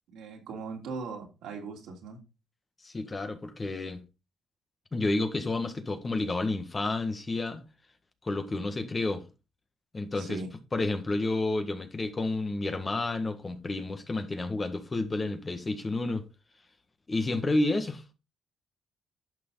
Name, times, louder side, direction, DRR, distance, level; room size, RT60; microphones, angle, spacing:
voice 1, 0.1-2.2 10.2-10.5, right 4 dB, 85° right, 2.9 m, -39 dB
voice 2, 2.8-4.0 4.9-7.6 8.2-9.2 9.9-10.4 10.7-16.2 17.1-18.0, left 2 dB, 25° left, 1.6 m, -30 dB
11.0 x 6.0 x 4.0 m
cardioid pair, 90°, 0 cm